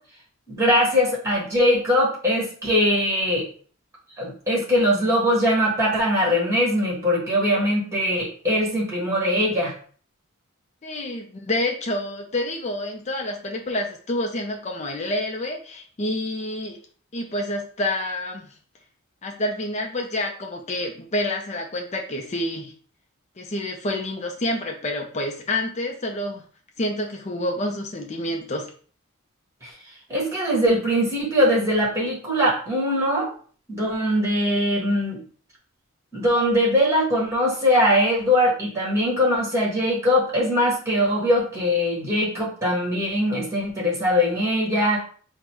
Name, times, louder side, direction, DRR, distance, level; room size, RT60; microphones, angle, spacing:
voice 1, 0.5-3.5 4.2-9.7 29.6-29.7 30.1-33.3 33.7-35.2 36.1-45.0, equal, 15° right, -3 dB, 1.5 m, -21 dB
voice 2, 10.8-16.8 17.1-18.4 19.2-22.7 23.4-26.4 26.8-28.7, left 1 dB, 35° left, 1 dB, 0.5 m, -28 dB
3.8 x 2.2 x 4.5 m, 0.43 s
head